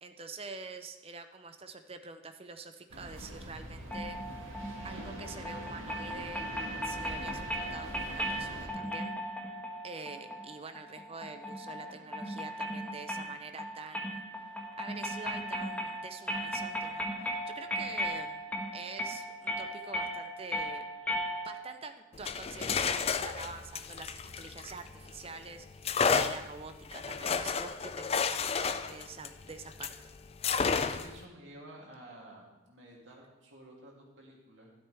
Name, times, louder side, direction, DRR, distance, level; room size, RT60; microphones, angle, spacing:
voice 1, 0.0-4.4 4.8-6.5 6.8-9.2 9.8-14.2 14.5-18.4 18.7-20.9 21.1-25.7 26.1-29.9, right 4 dB, 30° right, 8 dB, 0.7 m, -46 dB
sound 1, 2.9-8.7, right 1 dB, 85° right, 1.9 m, -43 dB
sound 2, 3.9-21.8, equal, 5° left, 1.4 m, -37 dB
sound 3, 22.1-25.2 25.8-30.0 30.4-31.2, left 5 dB, 30° left, 0.4 m, -31 dB
voice 2, 30.7-34.7, right 1 dB, 65° right, -3 dB, 2.9 m, -52 dB
13.0 x 12.0 x 3.5 m, 1.0 s
head